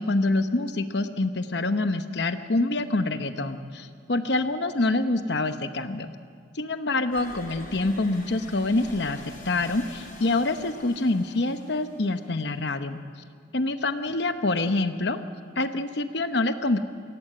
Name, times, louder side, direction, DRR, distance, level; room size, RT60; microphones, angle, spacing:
voice 1, 0.0-6.1 6.5-9.2 9.4-13.0 13.5-15.2 15.6-16.8, left 2 dB, 60° left, 9 dB, 0.9 m, -26 dB
sound 1, 7.1-12.6, left 1 dB, 45° left, 5.8 m, -46 dB
23.0 x 17.0 x 7.8 m, 2.1 s
head